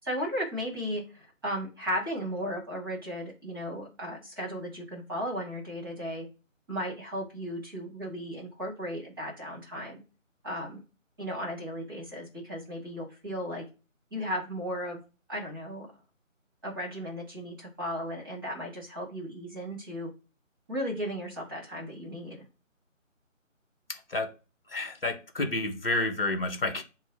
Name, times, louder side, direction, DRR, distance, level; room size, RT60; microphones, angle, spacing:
voice 1, 0.0-6.3 6.7-10.0 10.4-10.8 11.2-13.6 14.1-15.0 15.3-15.9 16.6-20.1 20.7-22.5, equal, 15° right, 1.3 m, -35 dB
voice 2, 23.9-24.3 24.7-26.8, left 2 dB, 45° left, 1.0 m, -30 dB
6.0 x 2.1 x 3.9 m
figure-of-eight pair, 160°, 40 cm